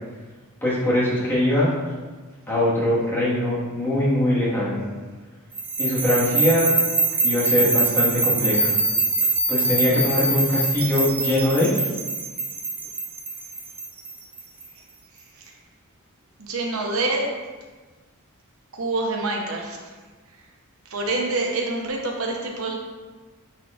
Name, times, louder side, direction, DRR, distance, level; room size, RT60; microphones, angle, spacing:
voice 1, 0.6-1.7 2.5-4.8 5.8-6.8 7.2-8.7 9.5-11.9, left 1 dB, 10° left, -8 dB, 1.6 m, -22 dB
sound 1, 5.6-14.6, right 3 dB, 10° right, 0.4 m, -24 dB
voice 2, 16.4-17.3 18.7-19.8 20.9-22.7, right 2 dB, 70° right, 0 dB, 0.9 m, -26 dB
9.2 x 4.4 x 2.5 m, 1.3 s
head